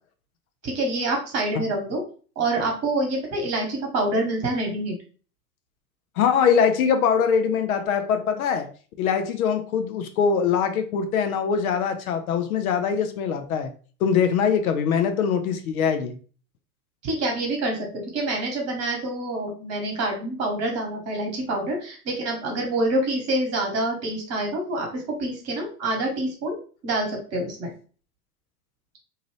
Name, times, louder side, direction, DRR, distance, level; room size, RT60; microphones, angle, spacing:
voice 1, 0.6-2.0 2.3-5.0 17.0-26.6 26.8-27.7, right 2 dB, 35° right, 1 dB, 1.2 m, -26 dB
voice 2, 6.2-8.7 9.0-13.7 14.0-16.2, left 7 dB, 65° left, 8 dB, 0.6 m, -22 dB
2.7 x 2.5 x 3.1 m, 0.39 s
hypercardioid pair, 95°, 47 cm